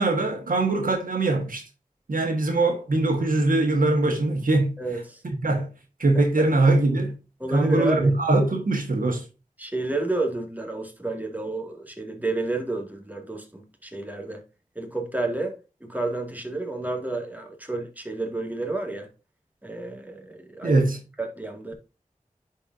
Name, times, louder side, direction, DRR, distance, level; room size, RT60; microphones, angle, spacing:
voice 1, 0.0-1.7 2.1-4.8 5.4-5.7 6.0-7.2 7.5-9.3 20.6-21.0, right 2 dB, 90° right, 1.5 m, -22 dB
voice 2, 4.8-5.2 6.1-6.5 7.4-8.1 9.6-14.4 14.8-15.6 15.8-19.1 19.6-20.8 21.2-21.7, right 2 dB, 10° right, 2.0 m, -30 dB
10.5 x 4.5 x 2.6 m
wide cardioid pair, 40°, 14 cm